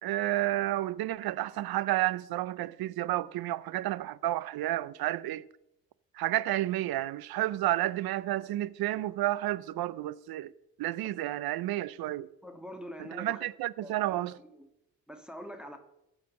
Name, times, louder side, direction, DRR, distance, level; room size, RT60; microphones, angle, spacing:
voice 1, 0.0-5.4 6.1-10.5 10.8-12.3 13.1-14.4, right 15 dB, 75° right, 0.6 m, -31 dB
voice 2, 12.4-13.5 13.8-14.7 15.1-15.8, equal, ahead, 1.5 m, -45 dB
15.0 x 5.1 x 6.4 m
cardioid pair, 70°, 38 cm